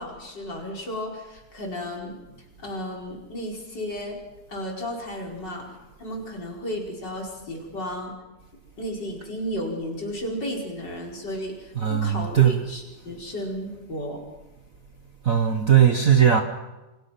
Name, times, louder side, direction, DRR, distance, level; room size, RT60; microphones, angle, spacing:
voice 1, 0.0-2.1 2.6-4.2 4.5-5.7 6.0-8.1 8.8-14.2, equal, 35° left, -1 dB, 5.4 m, -33 dB
voice 2, 11.8-12.6 15.2-16.4, right 9 dB, 85° right, 6 dB, 0.7 m, -18 dB
28.5 x 26.0 x 6.0 m, 1.1 s
omnidirectional pair, 3.4 m